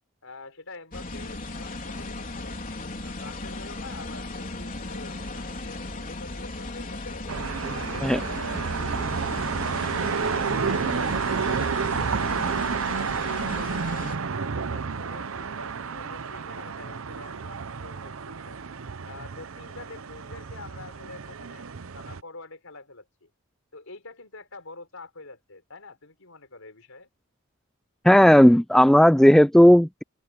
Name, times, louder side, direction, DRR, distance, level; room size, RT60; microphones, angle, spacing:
voice 1, 0.2-2.7 3.0-7.2 7.7-10.9 11.4-14.1 14.3-18.6 19.0-21.7 21.9-23.3 23.7-27.1, left 3 dB, 75° left, 4.7 m, -46 dB
sound 1, 0.9-14.2, left 2 dB, 40° left, 3.8 m, -36 dB
sound 2, 7.3-22.2, right 5 dB, 70° right, 0.7 m, -30 dB
voice 2, 28.0-30.0, equal, ahead, 0.3 m, -15 dB
head